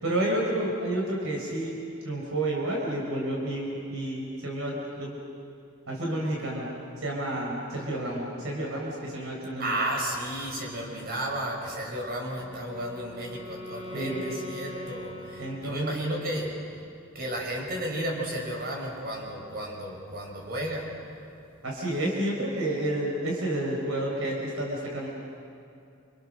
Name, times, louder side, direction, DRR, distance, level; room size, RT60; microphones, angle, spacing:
voice 1, 0.0-1.8 2.0-5.2 5.9-6.7 7.0-9.8 13.9-14.4 15.4-15.9 21.6-25.1, right 1 dB, 70° right, -2 dB, 4.5 m, -30 dB
voice 2, 9.6-16.5 17.1-20.9, right 1 dB, 50° right, -1 dB, 5.9 m, -33 dB
Wind instrument woodwind instrument, 12.3-16.2, left 1 dB, 25° right, 3.4 m, -42 dB
29.0 x 27.0 x 6.6 m, 2.6 s
head